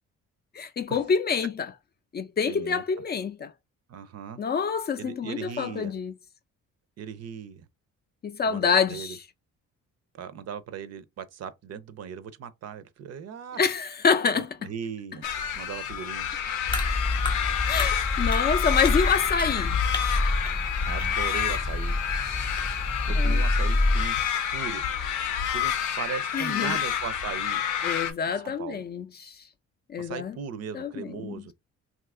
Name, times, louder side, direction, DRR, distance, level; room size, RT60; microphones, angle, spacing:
voice 1, 0.5-1.7 2.1-3.5 4.4-6.1 8.2-9.2 13.6-14.7 17.7-19.8 23.1-23.4 26.3-26.8 27.8-29.4 29.9-30.4 30.7-31.3, left 6 dB, 35° left, 0.4 m, -27 dB
voice 2, 2.5-2.8 3.9-4.4 5.0-5.9 7.0-7.7 8.5-9.2 10.1-13.6 14.3-15.3 15.5-16.3 20.9-22.0 23.1-24.8 25.5-27.6 28.3-28.8 30.0-31.5, right 7 dB, 55° right, 0.5 m, -38 dB
sound 1, 15.2-28.1, left 9 dB, 85° left, 0.6 m, -29 dB
sound 2, 16.7-24.0, left 2 dB, 15° left, 0.8 m, -27 dB
2.7 x 2.4 x 3.5 m
cardioid pair, 90°, 30 cm